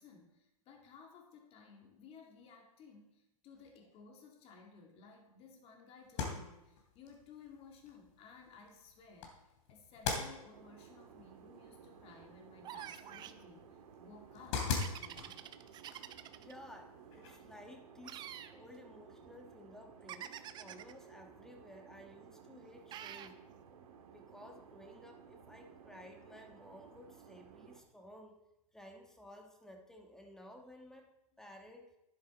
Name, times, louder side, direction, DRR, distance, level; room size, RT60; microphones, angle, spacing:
voice 1, 0.0-9.3 9.7-13.6 14.0-15.4, left 5 dB, 30° left, 2 dB, 2.6 m, -57 dB
sound 1, 6.0-17.7, left 5 dB, 55° left, 3.0 m, -44 dB
sound 2, 10.5-27.8, right 6 dB, 70° right, 1.9 m, -57 dB
sound 3, 12.6-13.4 14.8-16.5 18.0-18.5 20.1-20.9 22.9-23.3, right 11 dB, 25° right, 0.6 m, -47 dB
voice 2, 16.4-23.4 24.1-28.4 28.7-31.1 31.4-31.9, left 1 dB, 5° left, 3 dB, 1.4 m, -55 dB
11.5 x 9.8 x 4.1 m, 0.89 s
hypercardioid pair, 130°, 19 cm